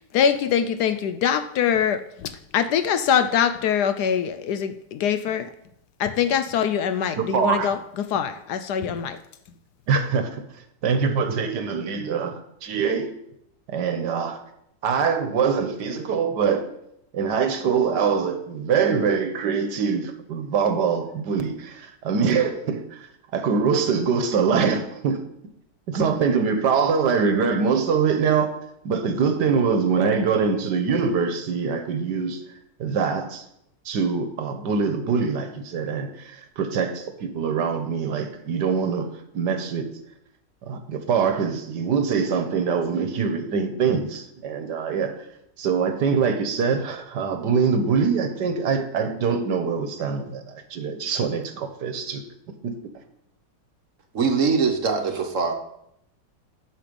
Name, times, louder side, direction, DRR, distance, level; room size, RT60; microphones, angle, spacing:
voice 1, 0.0-5.5 6.0-9.2, left 8 dB, 70° left, 1.1 m, -23 dB
voice 2, 7.2-7.7 9.9-10.4 10.8-13.1 13.7-14.4 14.8-16.7 17.1-23.1 23.3-25.2 25.9-28.5 28.8-32.4 32.8-33.4 33.8-39.1 39.3-39.9 40.7-45.2 45.6-52.2 52.6-52.7, right 6 dB, 70° right, 1.6 m, -24 dB
voice 3, 54.1-55.5, right 5 dB, 50° right, 1.3 m, -22 dB
10.5 x 6.7 x 5.3 m
omnidirectional pair, 1.9 m